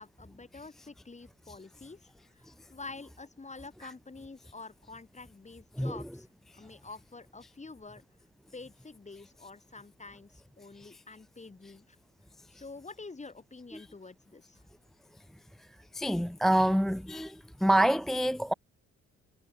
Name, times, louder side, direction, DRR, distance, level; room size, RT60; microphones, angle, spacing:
voice 1, 0.0-6.3 6.5-8.0 8.5-12.0 12.5-14.6, left 3 dB, 25° left, 4.9 m, -48 dB
voice 2, 15.9-18.5, right 1 dB, ahead, 0.4 m, -27 dB
cardioid pair, 90°, 30 cm